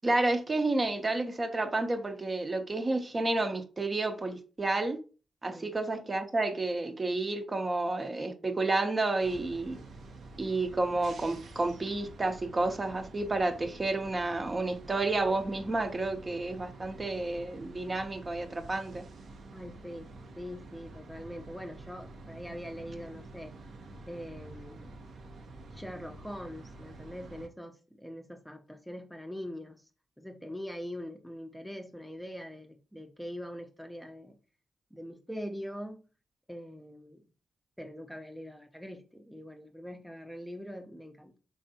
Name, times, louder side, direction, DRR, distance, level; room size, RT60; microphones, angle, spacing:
voice 1, 0.0-5.0 5.4-9.8 10.4-19.0, right 2 dB, 35° right, 0.7 m, -30 dB
sound 1, 9.2-27.5, right 2 dB, 70° right, 0.6 m, -49 dB
voice 2, 19.5-23.6 24.1-24.9 25.7-29.9 30.2-34.4 34.9-36.0 36.5-37.2 37.8-41.4, equal, ahead, 0.6 m, -43 dB
3.6 x 3.2 x 2.7 m
supercardioid pair, 50°, 0 cm